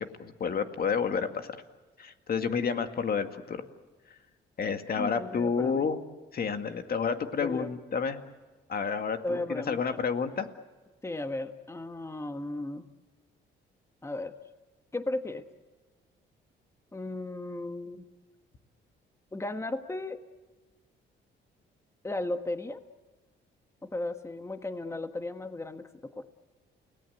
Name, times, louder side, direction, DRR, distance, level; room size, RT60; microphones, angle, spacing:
voice 1, 0.0-1.6 2.0-3.6 4.6-6.0 6.3-8.2 8.7-10.5, left 6 dB, 50° left, 7 dB, 2.1 m, -30 dB
voice 2, 5.0-5.9 7.4-7.7 9.2-10.0 11.0-12.9 14.0-14.3 14.9-15.4 16.9-18.0 19.3-20.2 22.0-22.8 23.8-26.2, left 2 dB, 15° left, 8 dB, 1.4 m, -35 dB
29.5 x 18.5 x 8.1 m, 1.3 s
cardioid pair, 90°, 20 cm